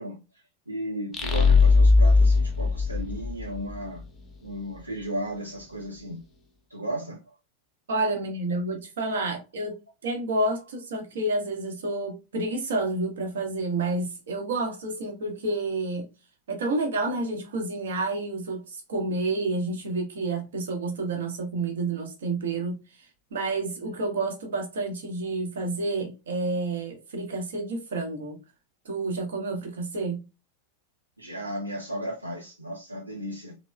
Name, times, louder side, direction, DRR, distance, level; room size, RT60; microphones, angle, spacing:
voice 1, 0.0-4.0 4.4-6.2 6.7-7.4 31.2-33.6, right 1 dB, 85° right, 0.5 m, -35 dB
sound 1, 1.1-3.8, left 4 dB, 20° left, 0.6 m, -19 dB
voice 2, 7.9-16.1 16.5-28.4 28.8-30.3, right 2 dB, 60° right, 0.8 m, -29 dB
3.0 x 2.0 x 2.3 m
figure-of-eight pair, 90°, 0 cm